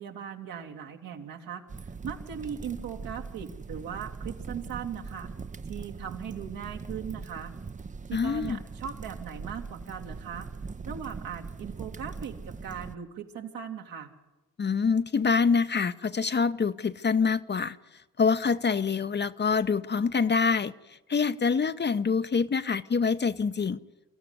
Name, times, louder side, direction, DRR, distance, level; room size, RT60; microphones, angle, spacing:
voice 1, 0.0-5.3 5.7-7.5 8.1-10.5 10.8-14.1, right 8 dB, 75° right, 2.5 m, -39 dB
sound 1, 1.7-12.9, right 4 dB, 20° right, 0.7 m, -41 dB
voice 2, 8.1-8.6 14.6-17.8 18.2-20.7 21.1-23.8, left 5 dB, 30° left, 0.8 m, -25 dB
25.5 x 14.0 x 9.7 m
supercardioid pair, 60°, 34 cm